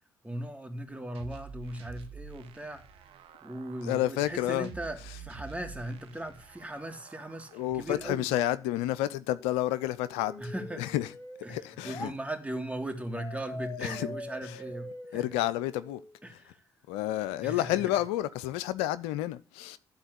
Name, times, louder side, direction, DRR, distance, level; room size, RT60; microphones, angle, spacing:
voice 1, 0.2-2.8 3.4-8.3 10.4-11.0 11.4-15.4 16.2-16.6 17.4-17.8, right 1 dB, 15° right, 3.1 m, -38 dB
sound 1, 1.1-8.1, right 6 dB, 65° right, 1.1 m, -48 dB
voice 2, 3.8-4.7 7.5-10.4 10.8-11.1 11.5-12.1 13.8-14.1 14.4-14.6 15.1-16.0 16.9-19.8, left 14 dB, 80° left, 0.5 m, -30 dB
sound 2, 9.3-12.1 13.2-16.2, left 1 dB, 25° left, 2.3 m, -44 dB
12.0 x 4.3 x 8.2 m
hypercardioid pair, 50°, 10 cm